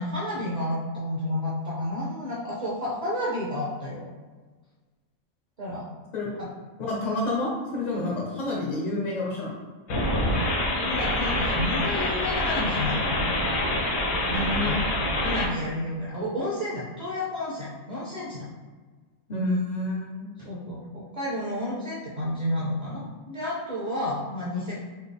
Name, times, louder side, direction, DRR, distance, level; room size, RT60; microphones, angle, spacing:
voice 1, 0.0-4.1 5.6-5.8 6.4-6.5 10.5-13.4 14.3-14.8 15.2-18.5 20.4-24.8, left 1 dB, 45° right, -5 dB, 0.5 m, -31 dB
voice 2, 6.8-9.6 14.3-14.8 19.3-20.3, left 2 dB, 55° left, -4 dB, 0.5 m, -29 dB
sound 1, 9.9-15.5, left 1 dB, 80° left, 1.1 m, -26 dB
4.0 x 2.0 x 3.4 m, 1.4 s
omnidirectional pair, 1.4 m